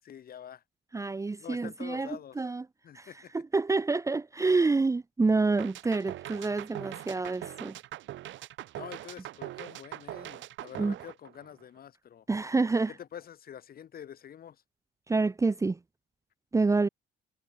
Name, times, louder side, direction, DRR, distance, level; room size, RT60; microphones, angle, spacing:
voice 1, 0.0-0.6 1.4-2.4 2.8-3.3 8.7-12.3 12.9-14.6, left 9 dB, 45° left, 4.4 m, -46 dB
voice 2, 0.9-2.1 2.4-2.6 2.9-3.1 3.5-7.7 10.8-10.9 12.3-12.9 15.1-15.8 16.5-16.9, right 3 dB, 15° right, 0.9 m, -27 dB
sound 1, 5.6-11.8, right 14 dB, 65° right, 2.1 m, -42 dB
cardioid pair, 120°, 21 cm